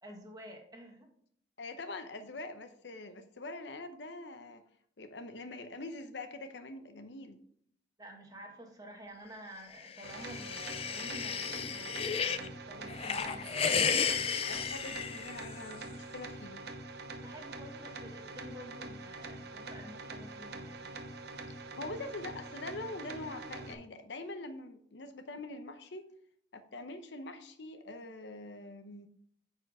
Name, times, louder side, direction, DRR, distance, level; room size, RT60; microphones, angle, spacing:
voice 1, 0.0-1.1 8.0-13.5 17.1-20.9, equal, 20° right, 2 dB, 1.4 m, -50 dB
voice 2, 1.6-4.6 5.0-7.4 14.4-16.6 21.8-26.1 26.5-29.1, left 2 dB, 70° left, 8 dB, 0.8 m, -44 dB
sound 1, 9.8-12.5 12.9-15.7, left 6 dB, 30° left, 0.4 m, -33 dB
sound 2, 10.0-23.7, right 3 dB, 60° right, 0.9 m, -45 dB
9.0 x 4.5 x 4.8 m, 0.64 s
head